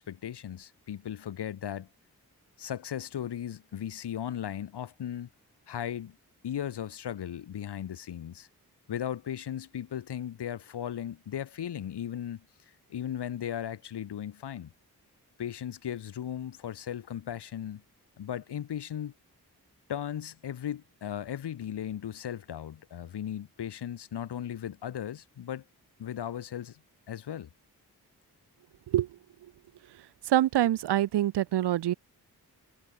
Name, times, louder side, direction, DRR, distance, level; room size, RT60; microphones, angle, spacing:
voice 1, 0.0-1.9 2.6-5.3 5.7-6.2 6.4-8.5 8.9-12.4 12.9-14.7 15.4-17.8 18.2-19.1 19.9-25.6 26.0-26.8 27.1-27.5, left 10 dB, 90° left, 2.2 m, -36 dB
voice 2, 30.2-31.9, right 13 dB, 90° right, 0.8 m, -25 dB
cardioid pair, 45°, 39 cm